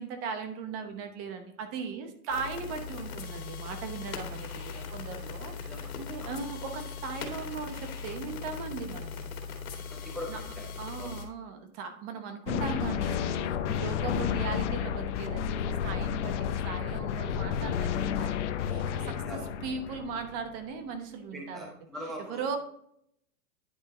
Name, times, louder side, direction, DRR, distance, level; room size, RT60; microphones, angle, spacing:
voice 1, 0.0-9.4 10.3-10.4 10.8-21.7 22.3-22.6, right 5 dB, 30° right, 6 dB, 0.9 m, -38 dB
sound 1, 2.3-11.2, left 5 dB, 75° left, 2.2 m, -39 dB
voice 2, 5.6-6.3 9.9-10.7 11.0-11.2 19.0-19.5 21.3-22.5, equal, ahead, -1 dB, 0.8 m, -42 dB
sound 2, 12.5-20.6, left 9 dB, 55° left, 0.8 m, -31 dB
10.0 x 5.2 x 3.1 m, 0.69 s
hypercardioid pair, 150°, 43 cm